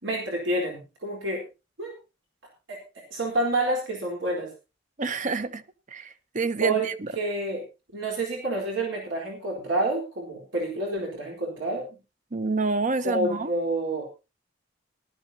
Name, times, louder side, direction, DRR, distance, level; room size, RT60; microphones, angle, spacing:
voice 1, 0.0-1.4 1.8-1.9 2.7-2.8 3.1-4.5 6.6-6.9 7.2-7.6 7.9-12.0 13.0-14.1, right 2 dB, 80° right, 4.0 m, -28 dB
voice 2, 5.0-5.6 5.9-7.1 12.3-13.5, right 4 dB, 40° right, 0.8 m, -28 dB
18.5 x 12.5 x 2.8 m
head